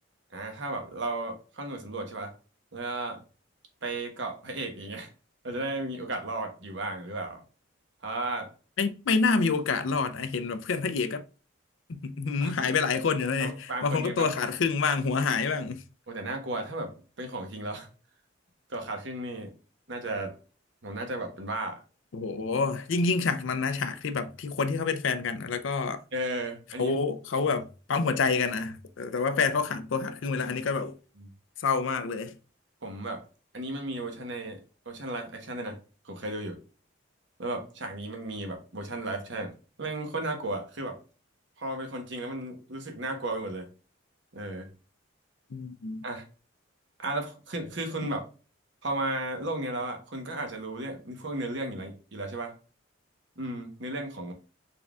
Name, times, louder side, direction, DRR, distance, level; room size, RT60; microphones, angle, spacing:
voice 1, 0.3-2.3 2.7-3.2 3.8-5.1 5.4-7.4 8.0-8.5 12.4-12.5 13.4-14.3 16.1-16.9 17.2-17.9 18.7-19.5 19.9-20.4 20.8-21.8 26.1-26.9 31.2-31.3 32.8-33.2 33.5-34.6 34.9-35.8 36.0-36.6 37.4-39.5 39.8-41.0 41.6-43.7 44.3-44.7 46.0-46.2 47.0-48.2 48.8-52.5 53.4-54.3, right 2 dB, 60° right, 1.0 m, -34 dB
voice 2, 8.8-11.2 11.9-15.8 22.1-26.0 26.8-31.0 31.6-32.4 45.5-46.0, left 4 dB, 70° left, 0.5 m, -28 dB
4.2 x 3.5 x 2.3 m
head